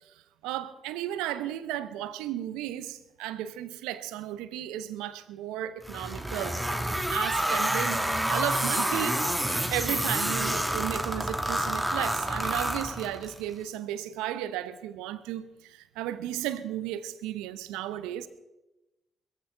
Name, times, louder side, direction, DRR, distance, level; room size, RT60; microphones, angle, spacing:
voice 1, 0.4-6.6 7.1-18.3, right 12 dB, 80° right, 0.9 m, -34 dB
sound 1, 5.8-13.4, right 1 dB, 10° right, 2.6 m, -28 dB
21.5 x 15.0 x 3.9 m
hypercardioid pair, 45°, 0 cm